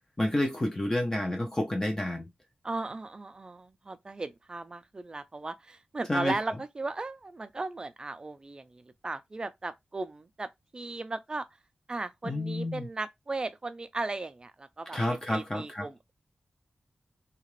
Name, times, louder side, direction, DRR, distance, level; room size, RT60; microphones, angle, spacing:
voice 1, 0.2-2.3 6.1-6.3 12.2-12.9 14.9-15.9, left 1 dB, 20° left, 0.6 m, -29 dB
voice 2, 2.6-10.5 10.7-11.4 11.9-16.1, right 3 dB, 30° right, 0.4 m, -36 dB
2.8 x 2.4 x 3.1 m
wide cardioid pair, 135°, 3 cm